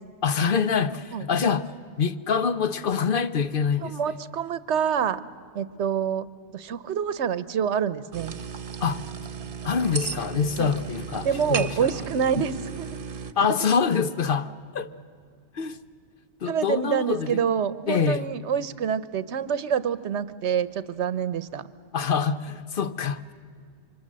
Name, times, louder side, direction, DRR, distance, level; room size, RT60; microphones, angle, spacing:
voice 1, 0.2-1.7 2.0-4.0 8.8-9.0 9.6-11.9 13.4-14.9 15.5-15.8 16.4-17.4 17.9-18.3 21.9-23.3, left 6 dB, 55° left, 0.9 m, -25 dB
voice 2, 3.8-5.2 5.5-6.3 6.5-8.4 10.6-10.7 11.2-13.0 13.6-13.7 16.5-21.7, right 7 dB, 85° right, 1.1 m, -27 dB
sound 1, 8.1-13.3, right 5 dB, 55° right, 1.1 m, -35 dB
28.0 x 24.5 x 7.5 m
omnidirectional pair, 1.1 m